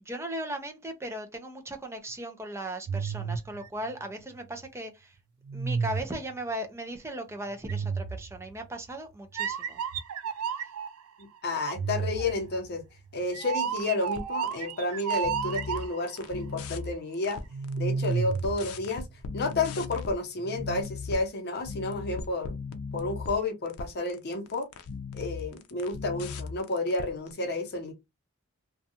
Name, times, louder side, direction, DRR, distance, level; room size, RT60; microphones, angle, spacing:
voice 1, 0.0-5.2 5.5-9.8, right 1 dB, 15° right, 0.5 m, -37 dB
sound 1, 2.9-4.7 5.5-6.4 7.7-8.7 9.3-11.0 11.7-16.2 17.5-19.3 20.4-20.8, right 6 dB, 90° right, 0.4 m, -32 dB
voice 2, 11.2-12.9 13.1-17.4 17.8-19.0 19.3-22.6 22.9-24.7 25.1-27.9, left 2 dB, 50° left, 0.7 m, -31 dB
sound 2, 13.8-14.7 15.0-17.8 18.0-20.2 20.6-21.3 21.6-27.3, left 4 dB, 90° left, 0.5 m, -38 dB
2.6 x 2.3 x 2.7 m
head